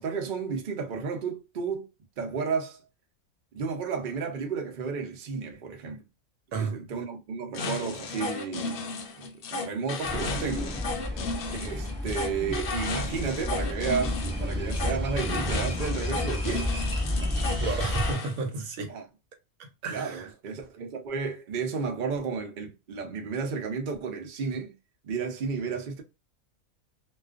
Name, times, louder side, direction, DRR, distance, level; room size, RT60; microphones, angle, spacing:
voice 1, 0.0-1.9 2.2-2.8 3.5-6.0 6.5-8.9 9.2-10.8 11.6-16.7 17.1-17.6 18.9-19.0 19.9-24.7 25.0-26.0, right 5 dB, 55° right, 0.6 m, -32 dB
voice 2, 6.5-6.8 17.6-19.0 19.6-20.3, right 4 dB, 80° right, 1.1 m, -32 dB
sound 1, 7.5-18.3, left 3 dB, 65° left, 0.7 m, -34 dB
sound 2, 10.0-18.1, left 1 dB, 10° right, 1.0 m, -31 dB
2.3 x 2.3 x 2.4 m
omnidirectional pair, 1.5 m